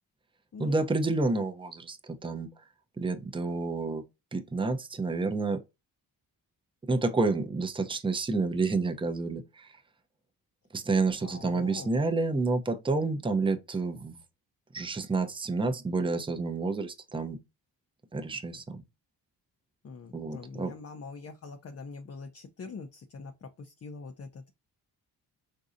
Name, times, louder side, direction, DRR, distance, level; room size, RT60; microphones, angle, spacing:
voice 1, 0.6-2.5 3.0-4.0 4.3-5.6 6.9-9.7 10.7-14.2 14.7-17.4 18.1-18.8 20.1-20.7, right 3 dB, 10° right, 0.5 m, -29 dB
voice 2, 11.2-11.9 19.8-24.5, left 4 dB, 35° left, 0.5 m, -44 dB
3.9 x 2.6 x 2.5 m
supercardioid pair, 50°, 45 cm